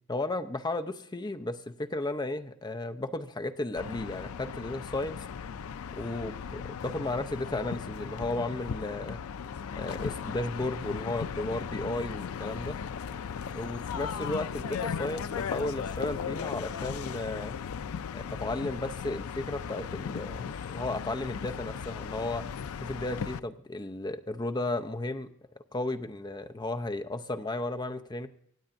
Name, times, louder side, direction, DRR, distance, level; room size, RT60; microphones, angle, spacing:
voice 1, 0.1-5.2 6.0-9.2 9.7-12.8 13.5-17.6 18.1-22.5 22.8-25.3 25.7-28.3, left 2 dB, 20° left, 7 dB, 0.6 m, -34 dB
sound 1, 3.8-23.4, left 7 dB, 80° left, 0.4 m, -37 dB
25.5 x 8.5 x 2.6 m, 0.70 s
head